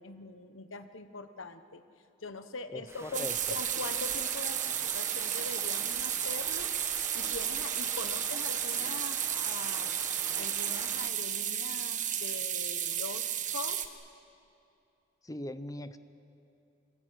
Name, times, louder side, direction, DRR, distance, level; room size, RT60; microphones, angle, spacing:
voice 1, 0.0-1.8 2.2-6.7 7.1-10.0 10.3-13.2 13.5-13.8, left 3 dB, 85° left, 10 dB, 1.3 m, -42 dB
voice 2, 2.7-3.3 15.2-16.0, left 1 dB, 20° left, 11 dB, 0.8 m, -40 dB
sound 1, 2.9-11.1, right 2 dB, 15° right, 1.2 m, -45 dB
sound 2, 3.1-13.9, right 10 dB, 40° right, 1.3 m, -33 dB
25.0 x 20.5 x 9.5 m, 2.7 s
head